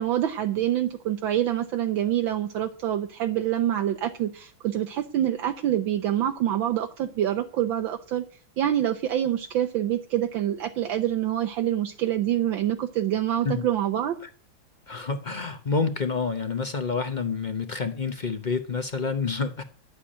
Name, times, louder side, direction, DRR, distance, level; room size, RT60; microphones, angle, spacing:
voice 1, 0.0-8.2 8.6-14.2, right 11 dB, 75° right, 1.6 m, -26 dB
voice 2, 14.9-19.6, left 4 dB, 55° left, 0.5 m, -28 dB
11.5 x 8.2 x 8.7 m
omnidirectional pair, 2.2 m